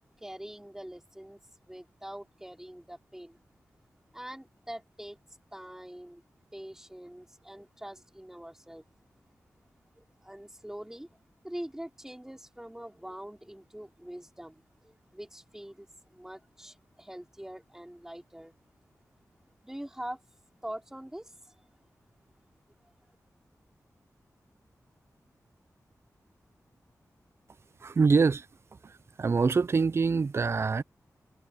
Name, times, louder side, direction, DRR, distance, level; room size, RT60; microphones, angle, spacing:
voice 1, 0.2-3.4 4.1-5.2 5.5-6.2 6.5-8.8 10.0-11.1 11.4-18.5 19.6-20.2 20.6-21.5, right 1 dB, 5° right, 4.2 m, -44 dB
voice 2, 27.8-28.5 28.8-28.9 29.2-30.8, right 4 dB, 45° right, 0.4 m, -24 dB
wide cardioid pair, 85°, 6 cm